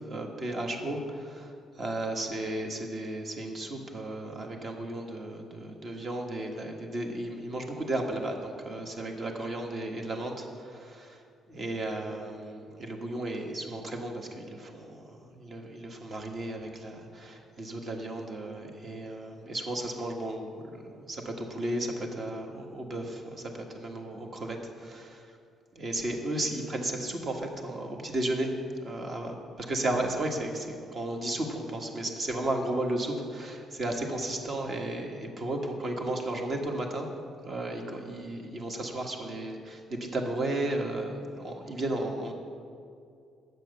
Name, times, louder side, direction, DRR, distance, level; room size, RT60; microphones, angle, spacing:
voice 1, 0.1-11.2 11.5-25.2 25.7-28.5 28.8-29.4 29.7-37.1 37.4-42.3, right 1 dB, 35° right, 2 dB, 1.5 m, -34 dB
11.5 x 7.9 x 6.6 m, 2.4 s
cardioid pair, 150°, 0 cm